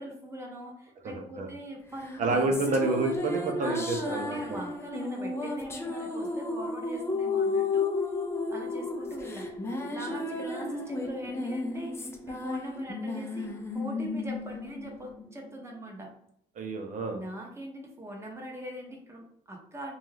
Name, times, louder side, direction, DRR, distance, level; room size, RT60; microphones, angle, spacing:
voice 1, 0.0-2.9 3.6-7.9 8.5-9.5 9.9-16.1 17.1-20.0, right 1 dB, 15° right, 0 dB, 0.7 m, -41 dB
voice 2, 1.2-1.5 2.2-4.4 16.6-17.2, right 2 dB, 50° right, 3 dB, 0.7 m, -28 dB
sound 1, 2.0-15.7, left 3 dB, 15° left, 0.4 m, -33 dB
2.6 x 2.3 x 3.2 m, 0.71 s
cardioid pair, 110°, 17 cm